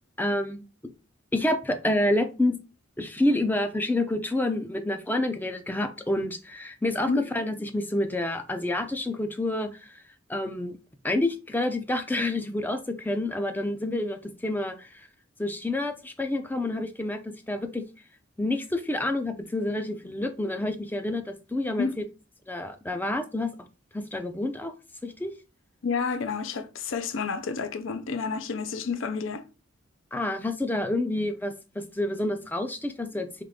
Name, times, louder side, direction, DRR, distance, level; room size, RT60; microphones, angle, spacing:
voice 1, 0.2-0.7 1.3-2.6 3.0-10.0 10.3-10.8 11.0-15.1 15.4-17.8 18.4-22.0 22.5-23.7 23.9-24.7 25.0-25.3 30.1-33.4, left 1 dB, 10° left, 0.4 m, -28 dB
voice 2, 25.8-29.5, left 5 dB, 70° left, 0.5 m, -30 dB
3.7 x 3.2 x 3.5 m
head